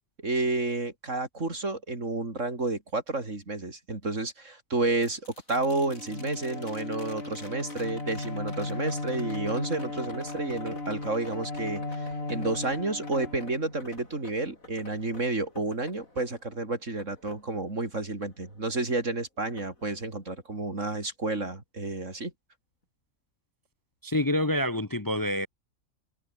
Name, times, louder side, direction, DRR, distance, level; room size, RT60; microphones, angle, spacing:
voice 1, 0.2-5.2 5.5-22.3, right 2 dB, 65° right, 4.7 m, -31 dB
sound 1, 5.0-19.1 19.6-20.6 22.8-22.9, left 2 dB, 80° left, 6.7 m, -51 dB
Bowed string instrument, 5.7-14.1, left 2 dB, 50° left, 3.8 m, -36 dB
voice 2, 24.0-25.5, left 1 dB, 15° left, 0.9 m, -27 dB
omnidirectional pair, 1.4 m